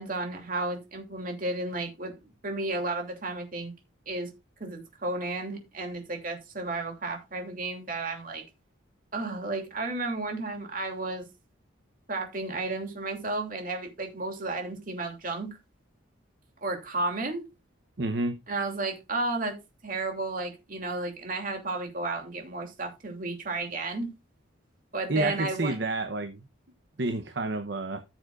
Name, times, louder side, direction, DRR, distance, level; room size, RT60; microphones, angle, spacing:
voice 1, 0.0-2.1 2.4-3.7 4.1-4.3 4.6-8.4 9.1-11.3 12.1-15.5 16.6-17.4 18.5-19.6 19.8-24.1 24.9-25.7, right 2 dB, 45° right, 2.8 m, -32 dB
voice 2, 18.0-18.4 25.1-26.5 27.0-28.0, right 2 dB, 60° right, 0.9 m, -29 dB
14.5 x 7.2 x 2.5 m
head